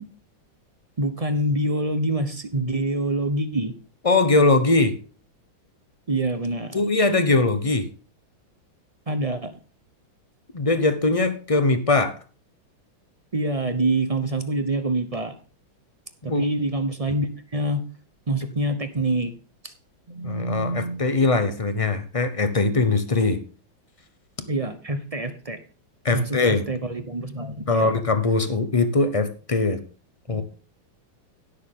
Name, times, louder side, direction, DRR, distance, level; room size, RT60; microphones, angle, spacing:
voice 1, 1.0-3.7 6.1-6.8 9.1-9.6 13.3-15.3 16.2-17.8 18.3-19.4 19.6-19.7 20.1-21.1 23.3-23.4 24.5-25.6 26.1-27.9 30.3-30.4, right 1 dB, 35° right, 9 dB, 0.5 m, -26 dB
voice 2, 4.0-4.9 6.7-7.9 10.5-12.2 16.2-16.4 20.2-23.4 26.0-26.6 27.7-29.8 30.3-30.4, left 3 dB, 35° left, 10 dB, 0.5 m, -21 dB
16.5 x 6.7 x 3.7 m, 0.37 s
omnidirectional pair, 2.2 m